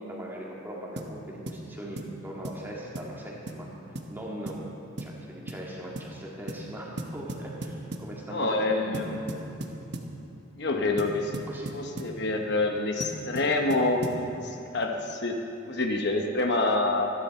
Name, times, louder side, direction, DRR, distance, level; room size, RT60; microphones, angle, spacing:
voice 1, 0.0-4.6 5.0-9.5 11.5-11.8, right 1 dB, 10° right, -4 dB, 2.3 m, -40 dB
sound 1, 1.0-1.2 1.5-1.6 2.0-2.2 2.4-2.6 3.0-3.2 3.5-3.6 4.0-4.1 4.5-4.7 5.0-5.2 5.5-5.7 6.0-6.1 6.5-6.7 7.0-8.1 8.9-10.1 11.0-12.2 13.0-14.3, right 1 dB, 55° right, 1.1 m, -37 dB
voice 2, 8.3-9.2 10.6-11.3 11.7-15.4 15.7-17.1, left 2 dB, 55° left, 3 dB, 0.9 m, -27 dB
24.5 x 10.5 x 4.4 m, 2.9 s
head